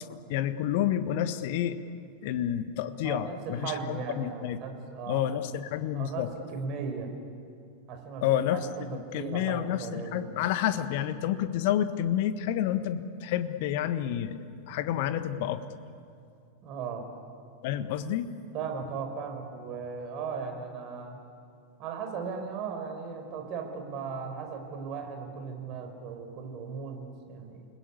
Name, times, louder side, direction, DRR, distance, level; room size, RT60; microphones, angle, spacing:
voice 1, 0.1-1.8 2.2-4.6 5.1-6.3 8.2-8.6 8.9-15.6 17.6-18.3, left 11 dB, 50° left, 11 dB, 1.4 m, -29 dB
voice 2, 3.0-5.3 5.9-7.1 7.9-8.2 8.5-10.2 16.6-17.1 18.5-21.2 21.8-27.7, right 5 dB, 40° right, 4 dB, 5.3 m, -37 dB
29.0 x 20.5 x 8.6 m, 2.4 s
figure-of-eight pair, 90°, 0 cm